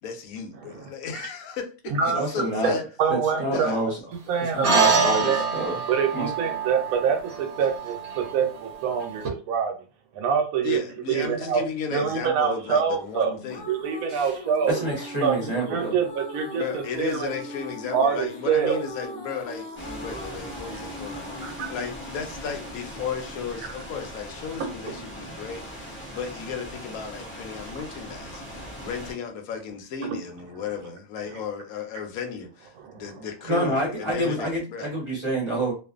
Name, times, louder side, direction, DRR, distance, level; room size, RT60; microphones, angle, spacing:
voice 1, 0.0-2.8 3.5-3.8 10.6-13.6 16.5-21.2 21.7-34.9, left 6 dB, 80° left, 1.1 m, -35 dB
voice 2, 0.6-1.3 1.9-2.2 2.6-2.7 3.0-3.7 4.3-5.5 5.9-9.9 10.1-10.8 11.1-11.6 11.9-13.3 13.7-14.8 15.2-17.3 17.9-18.8 21.4-21.7 23.6-23.7 24.8-25.1 26.1-26.2 28.6-28.9 31.3-31.4 32.8-33.3, right 6 dB, 80° right, 1.1 m, -26 dB
voice 3, 2.1-2.8 3.1-3.9 4.5-5.8 6.1-6.3 14.1-14.2 14.8-15.9 33.5-35.7, right 1 dB, 25° right, 0.7 m, -27 dB
sound 1, 4.6-9.3, right 5 dB, 60° right, 0.9 m, -26 dB
sound 2, 13.1-24.2, equal, 55° left, 0.5 m, -40 dB
sound 3, 19.8-29.1, equal, 10° left, 0.6 m, -40 dB
2.5 x 2.4 x 2.4 m
omnidirectional pair, 1.5 m